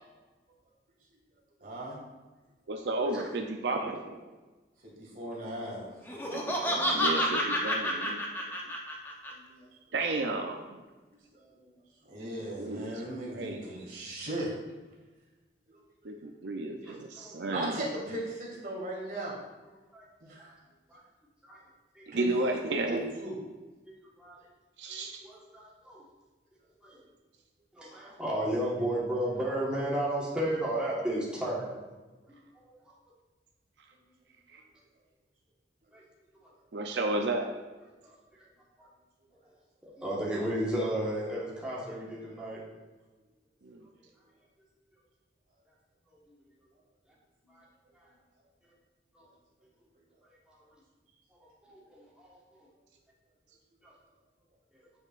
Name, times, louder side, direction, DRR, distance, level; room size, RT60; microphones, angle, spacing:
voice 1, 1.6-2.0 4.8-6.6 8.4-8.7 9.3-9.8 11.3-11.7 12.1-14.5 15.7-15.8 16.8-16.9 17.5-19.4 20.2-20.6 22.1-23.4 47.4-47.5, right 1 dB, 50° right, -4 dB, 2.1 m, -38 dB
voice 2, 2.7-4.2 6.3-8.2 9.9-10.8 12.2-12.3 12.6-12.9 13.3-13.6 16.0-17.8 22.1-23.0 24.8-25.1 34.5-34.6 36.7-37.5 43.6-43.8, right 2 dB, 80° right, 3 dB, 0.5 m, -32 dB
Laughter, 6.1-9.3, equal, 15° left, 0.8 m, -29 dB
voice 3, 16.9-17.5 19.9-20.3 20.9-21.0 21.4-21.6 21.9-22.0 24.2-24.4 24.9-25.0 25.2-26.0 26.8-27.0 27.7-31.7 32.3-32.7 35.9-36.0 36.4-36.5 38.0-38.4 39.8-42.6 47.5-47.6 49.1-49.2 51.3-52.3 53.8-53.9 54.7-54.8, right 1 dB, 5° right, -6 dB, 1.3 m, -34 dB
9.3 x 5.4 x 2.5 m, 1.2 s
head